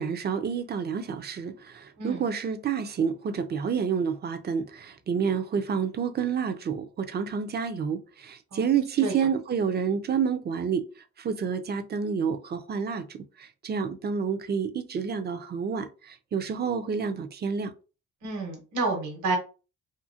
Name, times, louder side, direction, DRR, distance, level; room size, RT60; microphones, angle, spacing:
voice 1, 0.0-10.9 11.2-17.7, right 6 dB, 35° right, 0.4 m, -29 dB
voice 2, 18.2-19.4, right 3 dB, 70° right, 1.1 m, -29 dB
2.7 x 2.5 x 2.7 m
cardioid pair, 90°, 30 cm